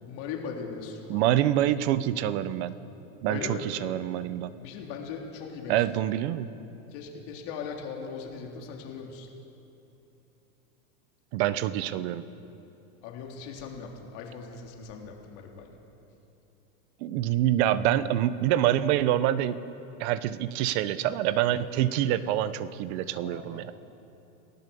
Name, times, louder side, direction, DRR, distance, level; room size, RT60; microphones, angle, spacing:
voice 1, 0.0-1.2 3.3-3.7 4.6-5.8 6.9-9.3 13.0-15.7 23.2-23.6, left 5 dB, 45° left, 0 dB, 3.4 m, -39 dB
voice 2, 1.1-2.7 3.2-4.5 5.7-6.5 11.3-12.2 17.0-19.5 20.0-23.7, right 12 dB, 45° right, 14 dB, 1.1 m, -26 dB
30.0 x 18.0 x 7.0 m, 2.9 s
supercardioid pair, 160°, 43 cm